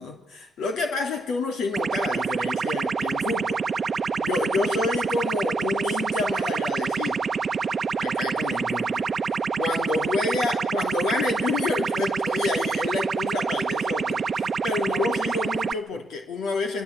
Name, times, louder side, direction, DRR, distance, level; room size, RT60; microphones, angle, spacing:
voice 1, 0.0-3.6 4.2-7.3 8.0-9.1 9.6-16.8, left 3 dB, 80° left, 4 dB, 3.2 m, -29 dB
sound 1, 1.7-15.7, right 5 dB, 40° right, 1.0 m, -27 dB
29.0 x 23.5 x 8.5 m, 0.86 s
cardioid pair, 100°, 0 cm